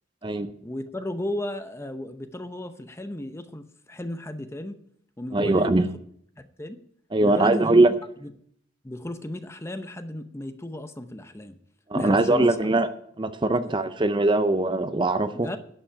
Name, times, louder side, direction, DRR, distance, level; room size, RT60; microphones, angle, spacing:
voice 1, 0.6-4.8 5.2-5.9 6.4-6.8 7.2-7.9 8.2-8.3 8.8-11.6 11.9-12.6 13.5-13.7 15.3-15.6, left 1 dB, 15° left, 9 dB, 0.7 m, -34 dB
voice 2, 5.3-5.9 7.1-7.9 11.9-12.9 13.2-15.5, right 2 dB, 25° right, 10 dB, 0.5 m, -21 dB
11.5 x 6.1 x 8.5 m, 0.67 s
head